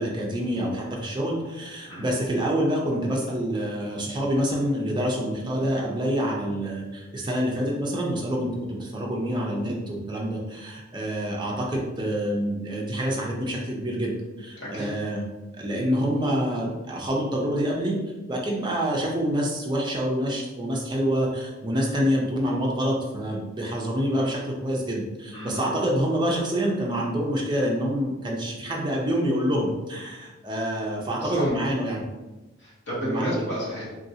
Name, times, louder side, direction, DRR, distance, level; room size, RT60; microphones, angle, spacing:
voice 1, 0.0-14.1 14.4-15.2 15.6-18.0 18.3-32.0 33.0-33.5, equal, 20° right, -2 dB, 0.5 m, -27 dB
voice 2, 14.6-14.9 25.3-25.8 31.1-31.5 32.6-33.9, equal, 55° left, -7 dB, 1.1 m, -32 dB
3.0 x 2.5 x 2.7 m, 1.1 s
head